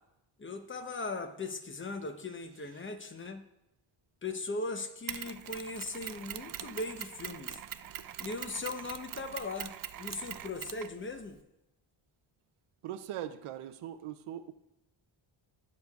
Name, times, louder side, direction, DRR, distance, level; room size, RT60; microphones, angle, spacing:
voice 1, 0.4-3.4 4.2-7.6 8.2-11.4, left 3 dB, 25° left, 0.9 m, -39 dB
Mechanisms, 5.1-11.4, right 10 dB, 45° right, 0.4 m, -43 dB
voice 2, 12.8-14.5, right 11 dB, 85° right, 0.7 m, -40 dB
18.0 x 6.6 x 2.4 m
cardioid pair, 105°, 49 cm